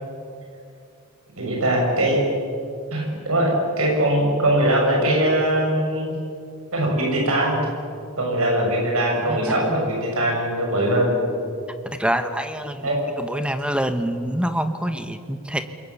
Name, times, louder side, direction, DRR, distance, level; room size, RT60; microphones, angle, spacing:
voice 1, 1.4-2.2 2.9-3.5 3.8-6.1 6.7-7.6 8.2-11.2 12.8-13.0, right 1 dB, 75° right, -1 dB, 6.6 m, -21 dB
voice 2, 9.3-9.7 12.0-12.9 13.2-15.6, right 1 dB, 5° right, 8 dB, 1.1 m, -26 dB
29.0 x 22.5 x 7.3 m, 2.4 s
head